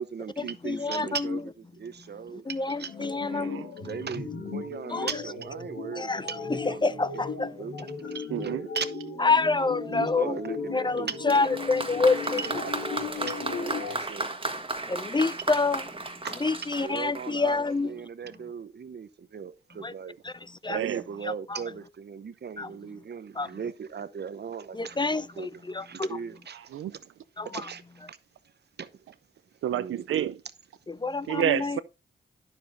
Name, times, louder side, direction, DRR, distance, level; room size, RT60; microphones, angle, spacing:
voice 1, 0.0-7.2 7.6-7.8 8.1-9.0 9.9-11.5 11.9-14.3 16.2-16.4 16.8-20.2 20.7-26.6 27.5-27.8 28.1-28.2 28.8-28.9 29.7-30.1, right 6 dB, 50° right, 0.8 m, -38 dB
voice 2, 0.6-1.1 2.5-3.6 4.9-5.1 6.0-6.2 6.8-7.5 9.2-10.4 10.7-12.4 14.9-15.8 16.4-17.9 19.8-19.9 20.6-20.8 22.6-22.7 23.4-23.5 24.7-25.5 25.7-26.1 27.4-27.5 31.0-31.8, left 3 dB, 20° left, 0.4 m, -27 dB
sound 1, 2.9-14.0, left 4 dB, 85° left, 1.8 m, -36 dB
voice 3, 3.3-3.7 8.3-8.7 9.6-9.7 13.8-14.2 20.7-21.0 26.5-26.9 29.6-30.4 31.3-31.8, right 11 dB, 80° right, 0.5 m, -30 dB
Applause, 11.3-17.7, right 2 dB, 25° right, 1.5 m, -34 dB
9.9 x 7.1 x 2.6 m
supercardioid pair, 45°, 21 cm